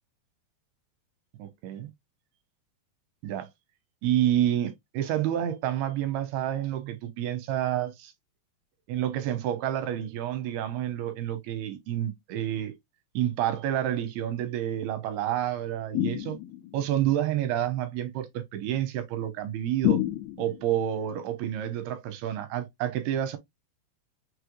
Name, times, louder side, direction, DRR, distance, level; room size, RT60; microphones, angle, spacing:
voice 1, 1.4-1.9 3.2-3.5 4.0-8.1 8.9-12.8 13.1-16.4 16.7-20.0 20.4-23.4, right 11 dB, 75° right, 2.7 m, -29 dB
sound 1, 15.9-16.8 19.8-20.7, left 14 dB, 85° left, 2.2 m, -28 dB
6.3 x 3.4 x 2.2 m
omnidirectional pair, 4.8 m